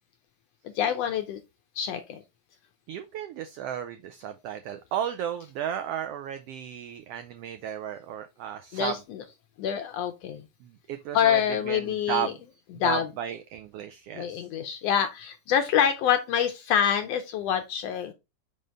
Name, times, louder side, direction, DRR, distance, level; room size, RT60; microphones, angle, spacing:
voice 1, 0.6-1.4 1.8-2.2 8.7-9.2 9.6-10.4 11.1-12.3 12.8-13.1 14.1-18.1, left 9 dB, 80° left, 1.5 m, -26 dB
voice 2, 2.9-9.0 10.6-12.4 12.8-14.5, right 10 dB, 85° right, 1.3 m, -34 dB
5.6 x 5.3 x 3.3 m
omnidirectional pair, 3.4 m